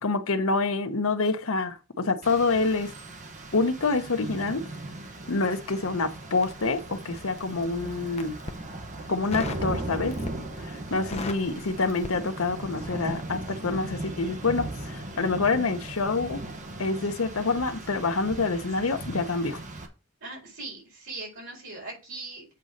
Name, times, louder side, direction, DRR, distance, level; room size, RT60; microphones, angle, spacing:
voice 1, 0.0-2.9 3.5-4.6 5.3-8.4 9.1-10.2 10.6-16.4 16.8-19.6, left 3 dB, 80° left, 0.9 m, -27 dB
Rain, 2.2-19.9, right 2 dB, 35° right, 1.1 m, -38 dB
Crackle, 6.4-7.5 8.0-8.6 9.3-9.7 10.1-10.6 10.9-12.8 13.0-13.3, left 3 dB, 30° left, 0.7 m, -37 dB
voice 2, 20.2-22.5, right 3 dB, 80° right, 4.6 m, -40 dB
8.1 x 4.1 x 5.0 m
head